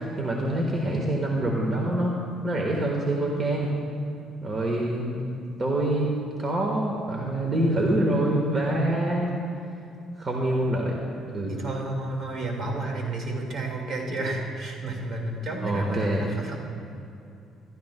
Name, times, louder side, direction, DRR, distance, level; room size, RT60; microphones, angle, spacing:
voice 1, 0.0-3.8 4.4-5.3 5.6-9.3 10.2-11.0 11.3-11.5 15.6-16.3, right 1 dB, 35° right, -1 dB, 1.4 m, -26 dB
voice 2, 11.5-16.6, right 2 dB, 55° right, 0 dB, 2.0 m, -31 dB
15.5 x 12.5 x 2.2 m, 2.6 s
cardioid pair, 85°, 0 cm